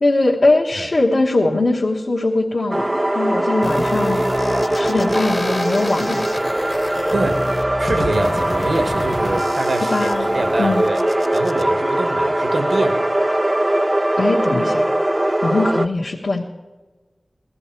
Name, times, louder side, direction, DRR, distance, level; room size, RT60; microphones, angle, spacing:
voice 1, 0.0-4.2 4.7-6.2 9.9-10.3 10.6-10.9 14.2-14.9 15.4-16.5, left 2 dB, 80° left, -4 dB, 1.2 m, -20 dB
sound 1, 2.7-15.9, right 1 dB, 20° right, 0.4 m, -20 dB
sound 2, 3.6-11.6, left 1 dB, 40° left, 0.8 m, -30 dB
voice 2, 7.1-7.4 7.8-10.1 10.3-11.0 11.3-13.0, right 2 dB, 90° right, 7 dB, 1.2 m, -24 dB
17.0 x 13.0 x 4.5 m, 1.2 s
wide cardioid pair, 80°, 0 cm